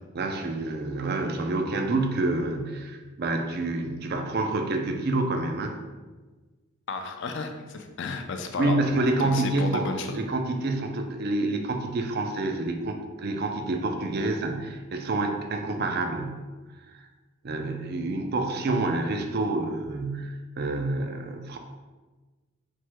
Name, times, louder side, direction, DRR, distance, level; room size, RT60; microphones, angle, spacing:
voice 1, 0.1-5.8 8.6-9.9 10.1-16.4 17.4-21.6, right 2 dB, 50° right, 5 dB, 0.4 m, -28 dB
voice 2, 6.9-8.8 9.2-10.2, left 3 dB, 60° left, 5 dB, 0.4 m, -32 dB
4.4 x 2.1 x 4.5 m, 1.3 s
head